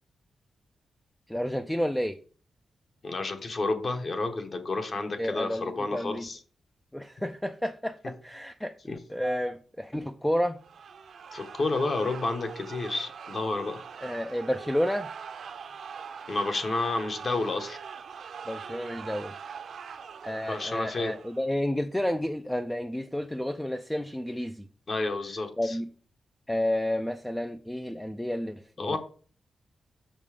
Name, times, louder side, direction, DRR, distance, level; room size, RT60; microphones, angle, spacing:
voice 1, 1.3-2.2 5.2-6.3 6.9-10.6 14.0-15.1 18.5-19.3 20.2-24.7 25.6-25.9 26.5-29.0, equal, 5° left, 0.3 m, -31 dB
voice 2, 3.0-6.4 8.9-9.0 11.3-13.8 16.3-17.8 20.5-21.1 24.9-25.7 28.8-29.0, left 3 dB, 40° left, 1.0 m, -30 dB
sound 1, 10.6-21.5, right 6 dB, 65° right, 0.7 m, -43 dB
6.6 x 5.3 x 4.9 m
wide cardioid pair, 175°, 0 cm